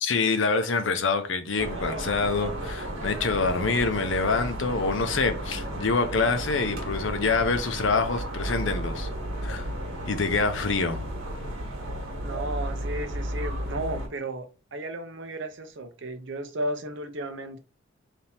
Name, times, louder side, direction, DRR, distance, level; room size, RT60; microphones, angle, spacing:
voice 1, 0.0-9.1 9.4-9.7 10.0-11.0, left 4 dB, 65° left, 0.7 m, -26 dB
sound 1, 1.6-14.1, right 1 dB, 85° right, 1.3 m, -33 dB
voice 2, 12.2-17.6, right 1 dB, 60° right, 0.7 m, -34 dB
3.5 x 2.8 x 4.2 m
head